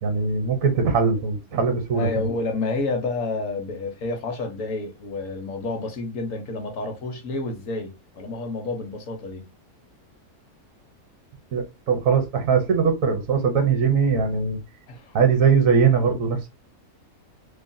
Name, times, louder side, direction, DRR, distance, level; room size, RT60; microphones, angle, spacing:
voice 1, 0.0-2.3 11.5-14.6 15.1-16.5, right 5 dB, 65° right, 1.0 m, -21 dB
voice 2, 1.9-9.5 14.9-15.1, left 3 dB, 65° left, 1.0 m, -29 dB
3.0 x 2.1 x 2.5 m
omnidirectional pair, 1.6 m